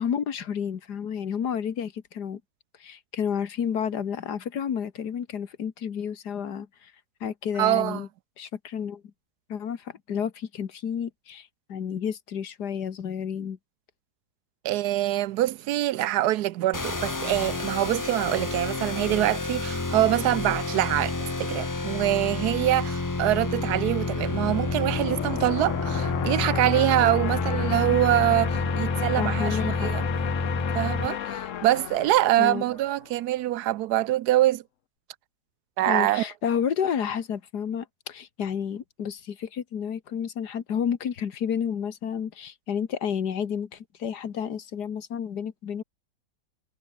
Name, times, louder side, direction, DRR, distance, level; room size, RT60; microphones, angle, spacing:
voice 1, 0.0-2.4 2.8-6.9 7.2-8.1 8.4-9.0 9.5-13.6 29.2-29.9 32.4-32.6 35.9-45.8, left 8 dB, 75° left, 2.0 m, -31 dB
voice 2, 7.6-8.0 14.6-30.0 30.7-34.6 35.8-36.3, right 14 dB, 75° right, 1.1 m, -24 dB
sound 1, 16.7-31.1, left 3 dB, 20° left, 0.5 m, -29 dB
sound 2, 23.7-33.2, left 10 dB, 55° left, 1.1 m, -34 dB
omnidirectional pair, 1.7 m